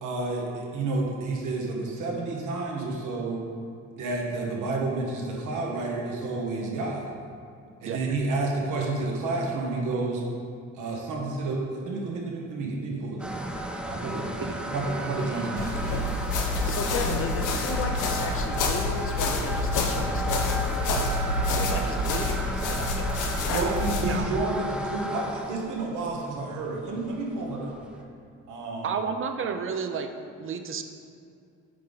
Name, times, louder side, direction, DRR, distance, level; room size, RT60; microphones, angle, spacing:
voice 1, 0.0-3.4 4.0-7.1 7.8-10.2 10.7-16.0 23.5-27.8 28.5-28.9, right 3 dB, 85° right, -1 dB, 1.2 m, -30 dB
sound 1, 13.2-28.0, right 1 dB, 5° right, 0.7 m, -34 dB
sound 2, 15.6-24.2, left 2 dB, 85° left, 0.8 m, -28 dB
voice 2, 16.7-21.0 21.4-23.2, left 4 dB, 45° left, 4 dB, 0.7 m, -35 dB
voice 3, 28.8-30.1 30.4-30.8, right 6 dB, 45° right, 6 dB, 0.6 m, -31 dB
8.3 x 3.7 x 4.0 m, 2.4 s
cardioid pair, 90°, 30 cm